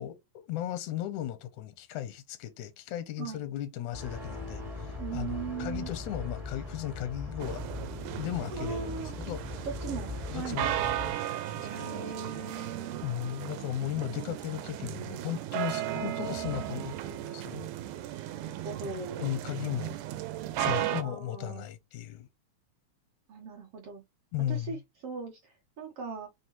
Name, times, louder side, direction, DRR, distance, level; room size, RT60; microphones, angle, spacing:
voice 1, 0.0-7.6 8.2-9.7 10.3-10.8 11.1-11.9 13.0-17.7 18.1-18.3 19.2-20.0 20.6-22.3 24.3-24.8, left 12 dB, 85° left, 2.0 m, -36 dB
sound 1, 3.9-11.1, left 3 dB, 35° right, 0.6 m, -40 dB
voice 2, 5.0-5.9 8.5-9.1 9.6-10.7 11.6-13.1 15.7-16.9 18.3-19.3 20.6-21.7 23.3-24.0 24.5-24.8 25.0-26.3, right 5 dB, 70° right, 1.5 m, -39 dB
sound 2, 7.4-21.0, right 13 dB, 85° right, 2.1 m, -36 dB
4.6 x 3.3 x 2.9 m
omnidirectional pair, 3.5 m